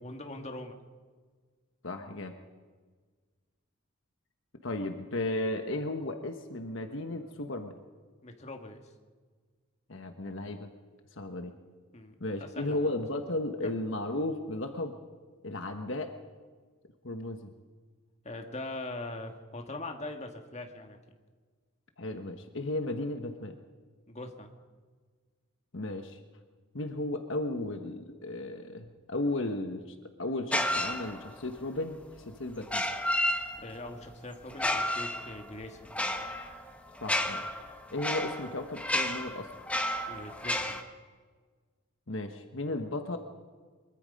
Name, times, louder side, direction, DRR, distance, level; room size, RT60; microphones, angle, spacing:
voice 1, 0.0-0.8 8.2-8.8 11.9-12.1 12.4-12.9 13.6-13.7 18.2-21.0 24.1-24.5 33.6-35.9 40.1-40.8, left 2 dB, 30° left, 4 dB, 1.8 m, -41 dB
voice 2, 1.8-2.3 4.6-7.7 9.9-10.7 11.2-11.5 12.2-14.9 15.4-16.1 17.0-17.5 22.0-23.5 25.7-26.2 26.7-32.0 32.3-32.9 37.0-37.4 37.9-39.5 42.1-43.2, left 2 dB, 60° left, 6 dB, 1.3 m, -34 dB
sound 1, 30.5-31.5 32.6-33.9 34.5-40.8, left 1 dB, 5° left, 1.3 m, -32 dB
23.5 x 22.5 x 5.4 m, 1.5 s
head